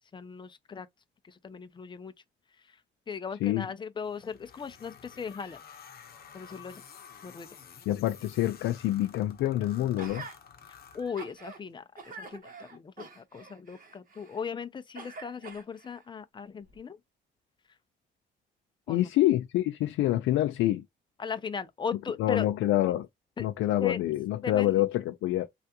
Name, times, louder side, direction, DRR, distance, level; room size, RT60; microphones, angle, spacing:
voice 1, 0.1-0.9 1.3-2.1 3.1-5.6 6.3-6.8 7.2-7.5 10.7-17.0 18.9-19.1 21.2-22.5 23.4-23.5 23.8-24.0 24.4-24.7, left 6 dB, 25° left, 0.4 m, -38 dB
sound 1, 4.0-11.6, left 7 dB, 50° left, 0.8 m, -51 dB
voice 2, 7.9-10.3 18.9-20.8 22.2-23.1 23.4-25.5, left 14 dB, 85° left, 0.4 m, -26 dB
Gasp, 10.0-10.4 10.9-11.6 12.0-14.5 14.9-16.0 16.7-16.8, right 4 dB, 45° right, 1.3 m, -46 dB
3.3 x 2.4 x 2.8 m
cardioid pair, 90°, 20 cm